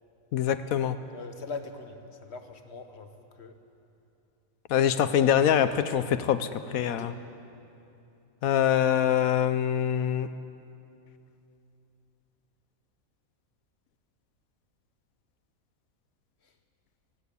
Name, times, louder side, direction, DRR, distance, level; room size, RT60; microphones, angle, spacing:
voice 1, 0.3-1.0 4.7-7.1 8.4-10.3, left 9 dB, 90° left, 11 dB, 1.2 m, -24 dB
voice 2, 1.1-3.6 6.8-7.1 16.4-16.5, left 4 dB, 55° left, 7 dB, 1.5 m, -42 dB
19.0 x 17.5 x 8.3 m, 2.8 s
omnidirectional pair, 1.4 m